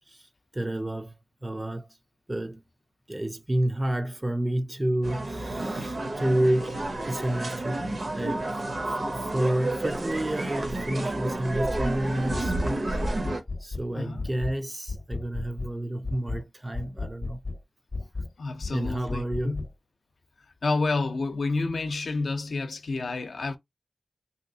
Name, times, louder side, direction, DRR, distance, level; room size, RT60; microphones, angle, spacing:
voice 1, 0.5-1.2 1.4-1.9 2.3-2.6 3.1-7.8 8.1-12.9 13.6-17.4 18.7-19.6, right 1 dB, 20° right, 0.3 m, -30 dB
sound 1, 5.0-13.4, right 2 dB, 55° right, 0.7 m, -30 dB
sound 2, 12.3-12.7 13.0-13.9 14.2-14.6 14.9-15.7 16.0-16.4 16.7-17.6 17.9-18.3 18.6-19.7, left 3 dB, 45° left, 0.7 m, -34 dB
voice 2, 13.9-14.3 18.4-19.7 20.6-23.6, left 3 dB, 85° left, 0.5 m, -29 dB
3.3 x 2.7 x 2.7 m
wide cardioid pair, 80°, 0 cm